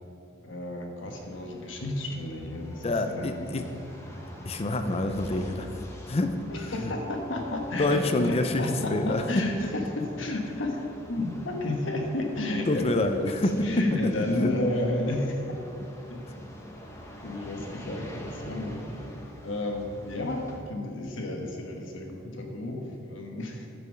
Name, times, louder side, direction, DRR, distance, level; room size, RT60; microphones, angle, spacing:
voice 1, 0.4-3.7 6.5-10.8 11.1-12.9 13.2-15.4 16.1-16.2 17.2-19.0 19.4-23.7, left 2 dB, 70° left, 2 dB, 1.3 m, -32 dB
sound 1, 1.1-20.6, equal, 15° left, 1.0 m, -45 dB
voice 2, 2.8-3.7 4.4-5.8 6.1-6.3 6.8-6.9 7.8-9.2 12.7-13.5 14.2-14.5, left 2 dB, 30° left, 7 dB, 0.5 m, -27 dB
9.8 x 6.9 x 5.2 m, 2.7 s
head